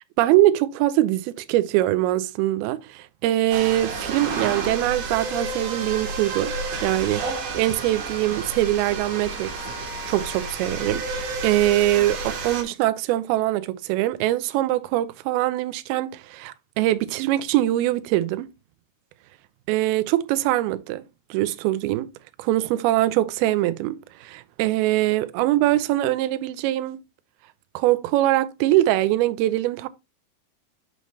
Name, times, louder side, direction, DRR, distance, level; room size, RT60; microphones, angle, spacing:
voice 1, 0.2-6.5 6.8-9.5 10.1-18.5 19.7-21.0 21.3-22.1 22.4-27.0 27.7-29.9, right 15 dB, 80° right, 2.3 m, -23 dB
sound 1, 3.5-12.6, right 4 dB, 60° right, 2.6 m, -31 dB
7.1 x 5.6 x 3.1 m
omnidirectional pair, 4.8 m